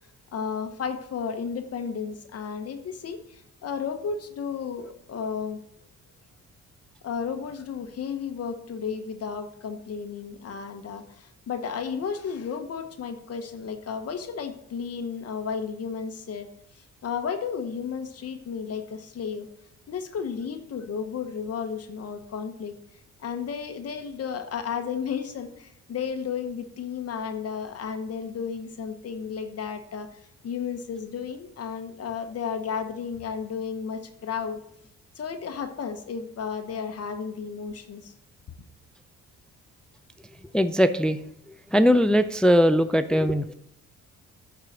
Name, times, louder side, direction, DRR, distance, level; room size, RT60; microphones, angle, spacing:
voice 1, 0.3-5.6 7.0-16.5 16.7-19.5 19.9-22.7 23.2-34.6 35.1-38.1, left 6 dB, 55° left, 8 dB, 1.0 m, -33 dB
voice 2, 40.5-41.2 41.7-43.5, equal, 5° left, 11 dB, 0.4 m, -20 dB
8.9 x 4.8 x 5.8 m, 0.78 s
cardioid pair, 90°, 30 cm